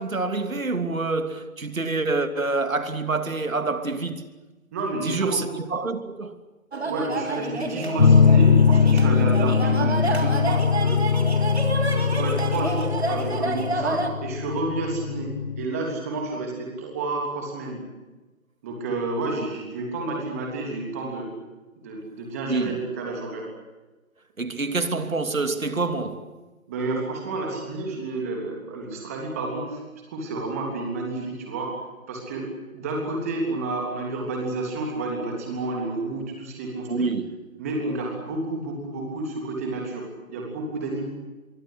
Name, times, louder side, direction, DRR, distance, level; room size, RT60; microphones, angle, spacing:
voice 1, 0.0-4.3 5.0-6.4 22.5-22.8 24.4-26.4 36.9-37.2, right 3 dB, 70° right, 3.0 m, -27 dB
voice 2, 4.7-5.4 6.8-11.3 11.9-15.3 15.6-17.8 18.6-21.3 21.8-23.5 26.7-29.8 30.1-31.8 32.1-32.5 32.7-41.0, right 2 dB, 10° right, 3.2 m, -30 dB
sound 1, 6.7-14.1, right 3 dB, 50° right, 3.6 m, -29 dB
sound 2, 8.0-15.6, left 6 dB, 45° left, 1.4 m, -21 dB
25.0 x 23.5 x 8.1 m
figure-of-eight pair, 170°, 42 cm